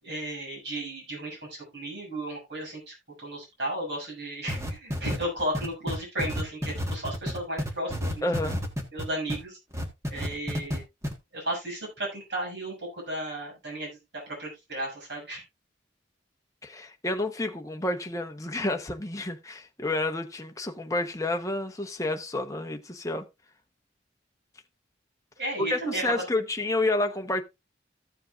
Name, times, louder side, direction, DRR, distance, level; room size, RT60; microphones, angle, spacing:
voice 1, 0.0-8.3 8.9-9.6 10.1-10.8 11.3-13.9 14.3-15.4 25.4-26.5, right 1 dB, 60° right, 6.9 m, -34 dB
sound 1, 4.5-9.4 9.7-10.8 11.0-11.1, equal, 15° right, 1.5 m, -30 dB
voice 2, 8.2-8.6 16.6-23.2 25.6-27.4, left 2 dB, 15° left, 0.9 m, -30 dB
15.0 x 7.5 x 2.5 m
head